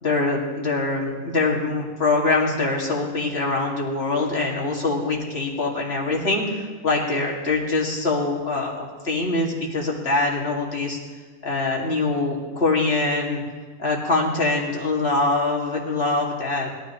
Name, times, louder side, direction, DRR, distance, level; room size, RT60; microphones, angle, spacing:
voice 1, 0.0-11.0 11.4-13.4 13.8-16.7, left 3 dB, 40° left, -2 dB, 2.5 m, -24 dB
21.0 x 13.0 x 3.1 m, 1.4 s
omnidirectional pair, 1.6 m